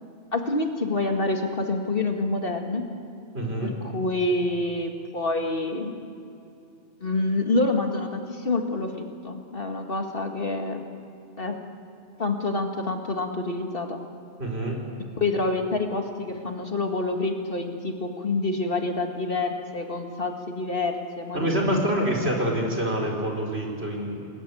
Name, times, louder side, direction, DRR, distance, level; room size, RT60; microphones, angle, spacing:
voice 1, 0.3-2.8 3.6-6.0 7.0-10.8 11.4-11.6 12.2-14.0 15.2-21.8, left 2 dB, 50° left, 3 dB, 2.2 m, -27 dB
voice 2, 3.3-3.7 14.4-14.8 21.3-24.3, right 1 dB, 65° right, 0 dB, 5.2 m, -26 dB
29.0 x 20.5 x 8.6 m, 2.7 s
omnidirectional pair, 1.2 m